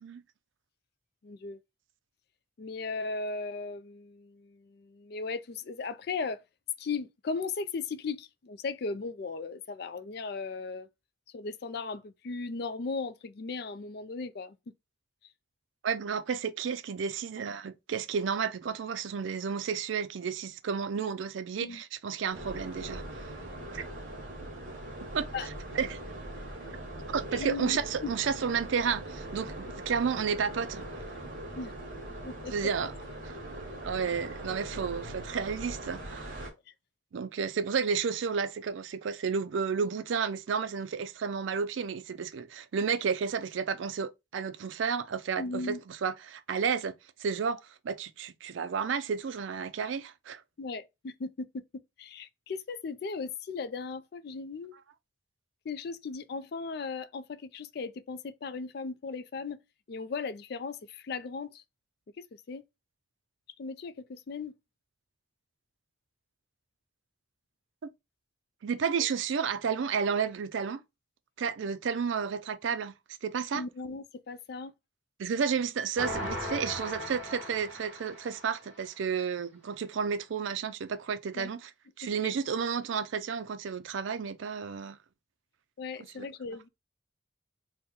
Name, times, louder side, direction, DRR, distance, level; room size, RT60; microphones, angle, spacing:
voice 1, 1.2-1.6 2.6-6.4 6.8-10.9 11.3-14.6 21.6-21.8 25.3-25.5 27.3-28.1 31.6-31.7 32.3-32.5 45.4-45.8 50.6-54.8 55.6-59.6 59.9-61.6 62.2-62.6 63.6-64.5 73.5-74.7 81.3-81.5 85.8-86.7, left 4 dB, 55° left, 0.4 m, -37 dB
voice 2, 15.8-23.2 23.7-23.8 25.1-25.5 25.7-26.0 27.1-30.9 32.5-32.9 33.8-36.3 37.1-46.9 47.2-50.4 67.8-67.9 68.6-70.8 71.4-72.9 73.2-73.6 75.2-81.7 82.0-85.0 86.2-86.3, right 6 dB, 75° right, 0.4 m, -32 dB
sound 1, 22.3-36.5, right 1 dB, 45° right, 1.2 m, -41 dB
sound 2, 76.0-78.7, left 1 dB, 5° right, 2.6 m, -37 dB
4.2 x 2.1 x 3.6 m
head